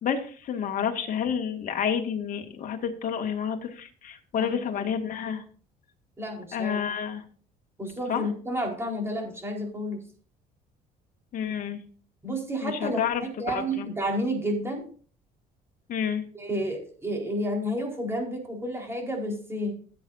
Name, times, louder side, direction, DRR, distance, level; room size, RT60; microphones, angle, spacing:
voice 1, 0.0-5.4 6.5-7.2 8.1-8.3 11.3-11.8 12.6-13.9 15.9-16.2, left 7 dB, 55° left, 3 dB, 2.1 m, -29 dB
voice 2, 4.3-4.9 6.2-6.8 7.8-10.0 12.2-14.9 16.3-19.7, equal, 15° right, 0 dB, 4.4 m, -31 dB
16.0 x 8.6 x 2.7 m, 0.43 s
cardioid pair, 110°, 17 cm